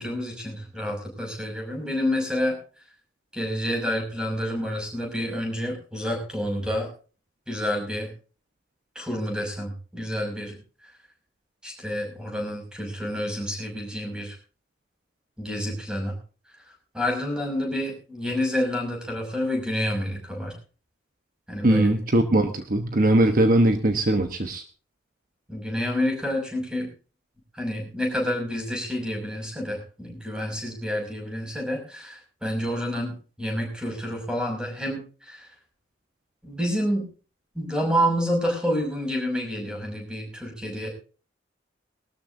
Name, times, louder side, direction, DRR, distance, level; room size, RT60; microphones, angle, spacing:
voice 1, 0.0-2.6 3.3-6.9 7.5-8.1 8.9-10.6 11.6-14.3 15.4-16.2 16.9-20.5 21.5-21.9 25.5-26.9 27.5-35.5 36.4-37.1 37.5-40.9, equal, 5° right, 1 dB, 6.0 m, -28 dB
voice 2, 21.6-24.6, right 1 dB, 45° right, 7 dB, 1.1 m, -20 dB
22.0 x 13.0 x 2.7 m, 0.37 s
head